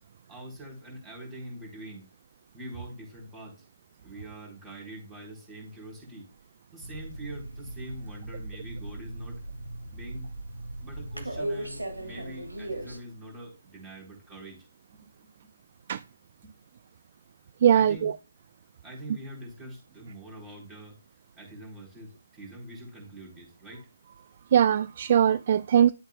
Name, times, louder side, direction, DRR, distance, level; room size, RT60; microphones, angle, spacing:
voice 1, 0.3-2.1 2.5-3.6 4.0-6.3 6.7-9.4 9.9-10.3 10.8-14.6 14.9-15.3 16.4-16.5 17.7-18.1 18.8-21.0 21.4-23.9, right 1 dB, 10° right, 4.1 m, -44 dB
sound 1, 6.8-13.0, right 1 dB, 85° right, 2.4 m, -38 dB
voice 2, 17.6-18.1 24.5-25.9, right 9 dB, 40° right, 0.3 m, -21 dB
11.5 x 7.9 x 2.3 m
figure-of-eight pair, 145°, 0 cm